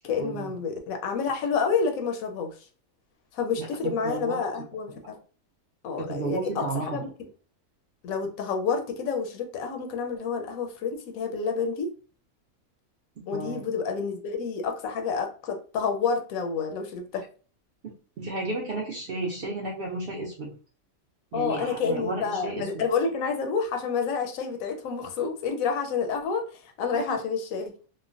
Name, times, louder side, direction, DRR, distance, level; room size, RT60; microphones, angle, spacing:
voice 1, 0.0-2.6 3.3-5.2 5.8-7.1 8.0-11.9 13.3-17.3 21.3-27.7, left 5 dB, 75° left, 5 dB, 1.0 m, -29 dB
voice 2, 3.8-4.4 6.0-7.0 13.3-13.6 17.8-20.5 21.3-22.8 26.9-27.2, right 3 dB, 65° right, -3 dB, 0.5 m, -33 dB
3.1 x 2.1 x 2.4 m, 0.38 s
omnidirectional pair, 1.5 m